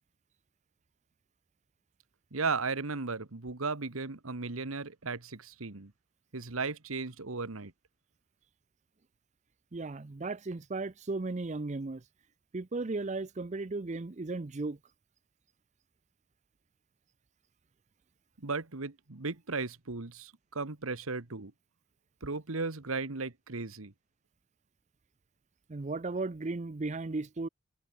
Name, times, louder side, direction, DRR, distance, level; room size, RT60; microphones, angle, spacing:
voice 1, 2.3-5.9 6.3-7.7 18.4-21.5 22.2-23.9, right 4 dB, 85° right, 1.5 m, -36 dB
voice 2, 9.7-12.0 12.5-14.8 25.7-27.5, right 3 dB, 35° right, 0.6 m, -35 dB
head